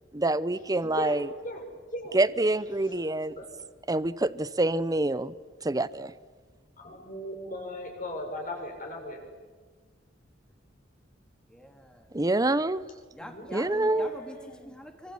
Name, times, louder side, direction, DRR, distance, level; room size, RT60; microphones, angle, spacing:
voice 1, 0.1-1.3 2.1-3.4 3.9-5.3 5.6-6.1 12.1-12.8 13.5-14.1, right 2 dB, 20° right, 16 dB, 0.8 m, -26 dB
voice 2, 0.8-1.6 1.9-2.2 3.4-3.5 6.8-9.2 13.2-14.7, left 1 dB, 45° left, 2 dB, 6.6 m, -38 dB
voice 3, 11.5-12.2 13.1-15.1, equal, 5° left, 4 dB, 3.0 m, -44 dB
27.0 x 24.5 x 8.5 m, 1.4 s
head